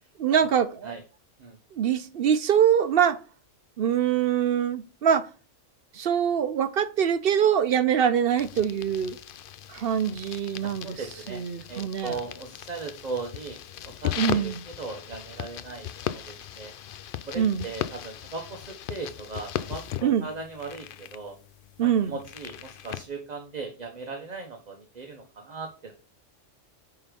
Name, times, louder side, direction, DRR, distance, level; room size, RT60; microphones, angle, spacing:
voice 1, 0.2-0.9 1.7-3.2 3.8-5.3 5.9-9.2 9.7-11.0 11.3-12.2 14.1-14.6 17.4-17.7 20.0-20.3 21.8-22.2, right 8 dB, 60° right, 0.7 m, -24 dB
sound 1, 8.4-23.1, left 10 dB, 60° left, 0.6 m, -37 dB
voice 2, 10.6-11.4 11.7-16.7 17.3-21.3 21.8-25.9, right 4 dB, 35° right, 1.1 m, -38 dB
9.5 x 3.8 x 5.2 m
omnidirectional pair, 1.3 m